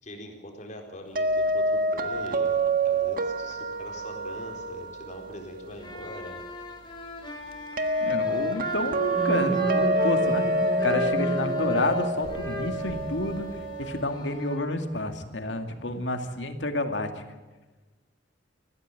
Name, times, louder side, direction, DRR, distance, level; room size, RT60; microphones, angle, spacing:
voice 1, 0.0-6.4, left 1 dB, 45° left, 2 dB, 4.1 m, -42 dB
sound 1, 1.2-14.0, right 2 dB, 50° right, 1.6 m, -28 dB
sound 2, 5.7-15.5, left 1 dB, 25° left, 3.4 m, -39 dB
voice 2, 8.0-10.4 10.8-13.5 13.8-17.2, left 2 dB, 85° left, 6 dB, 2.2 m, -29 dB
sound 3, 9.2-13.9, right 1 dB, ahead, 3.2 m, -33 dB
20.5 x 15.0 x 9.2 m, 1.2 s
head